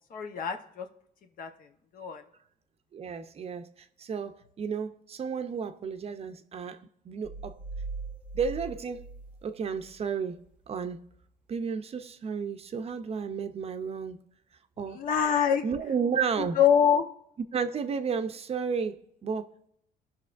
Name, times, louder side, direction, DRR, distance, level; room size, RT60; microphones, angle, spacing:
voice 1, 0.1-0.9 1.4-1.5 1.9-2.2 14.9-15.6 16.4-17.1, left 8 dB, 55° left, 1.0 m, -24 dB
voice 2, 2.9-6.8 7.0-7.6 8.3-9.1 9.4-10.4 10.7-11.0 11.5-14.2 14.8-15.0 15.6-16.6 17.5-19.7, right 6 dB, 35° right, 0.6 m, -32 dB
sound 1, 7.2-10.0, right 3 dB, 5° right, 0.8 m, -40 dB
17.0 x 6.0 x 2.5 m
cardioid pair, 110°, 17 cm